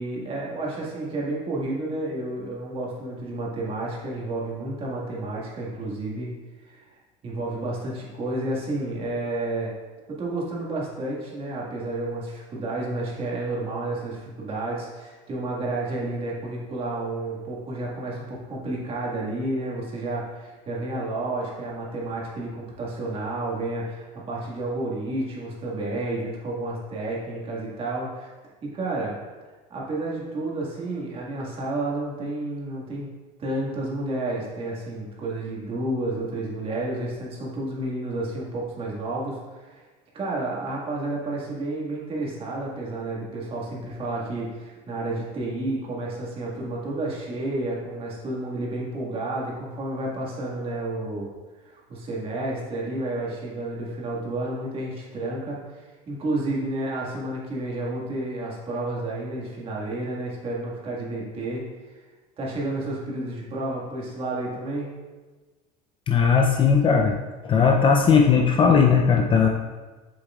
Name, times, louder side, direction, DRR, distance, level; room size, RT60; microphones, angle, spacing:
voice 1, 0.0-6.3 6.6-6.8 7.2-9.7 10.1-28.3 28.6-29.1 29.7-33.1 33.4-39.8 40.1-51.3 51.7-55.6 56.1-61.6 62.4-64.9, right 2 dB, 30° right, -4 dB, 1.8 m, -31 dB
voice 2, 66.1-67.2 67.4-69.5, left 6 dB, 25° left, 2 dB, 0.5 m, -18 dB
7.4 x 7.2 x 2.4 m, 1.3 s
cardioid pair, 140°, 19 cm